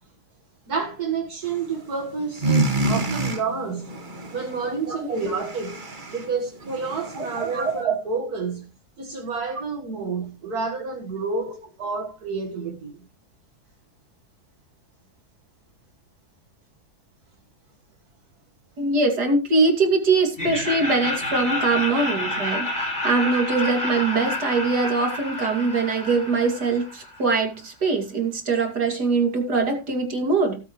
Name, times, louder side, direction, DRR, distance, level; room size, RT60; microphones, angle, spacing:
voice 1, 0.7-3.9 4.3-8.7 9.0-13.0, right 4 dB, 70° right, 2.2 m, -29 dB
sound 1, 1.4-2.0 2.2-7.8, right 2 dB, 30° right, 1.5 m, -28 dB
voice 2, 4.6-5.0 7.1-7.7 18.8-30.6, right 3 dB, 90° right, 3.1 m, -23 dB
Laughter, 20.3-27.3, left 1 dB, 30° left, 5.2 m, -29 dB
18.0 x 8.1 x 3.1 m
omnidirectional pair, 1.7 m